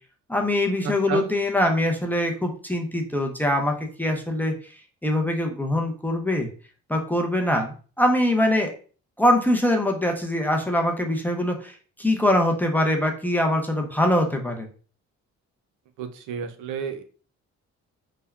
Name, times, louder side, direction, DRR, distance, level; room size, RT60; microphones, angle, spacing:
voice 1, 0.3-4.7 5.0-6.5 6.9-8.7 9.2-14.7, left 1 dB, 5° left, 2 dB, 0.5 m, -23 dB
voice 2, 0.8-1.3 16.0-17.0, right 7 dB, 80° right, 8 dB, 0.5 m, -31 dB
3.3 x 2.1 x 2.2 m, 0.39 s
cardioid pair, 90°, 30 cm